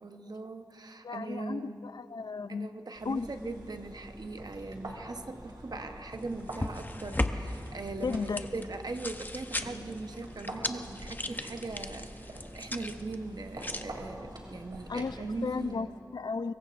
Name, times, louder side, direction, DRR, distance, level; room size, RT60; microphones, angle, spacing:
voice 1, 0.0-1.8 2.5-15.9, right 3 dB, 65° right, 7 dB, 1.0 m, -40 dB
voice 2, 1.0-2.7 3.0-3.3 8.0-8.4 14.9-15.9 16.1-16.5, left 4 dB, 70° left, 14 dB, 0.4 m, -34 dB
sound 1, 2.9-15.7, right 1 dB, 90° right, 2.8 m, -46 dB
sound 2, 6.1-13.8, left 1 dB, 25° left, 0.8 m, -38 dB
25.0 x 22.5 x 2.5 m, 2.5 s
cardioid pair, 45°, 7 cm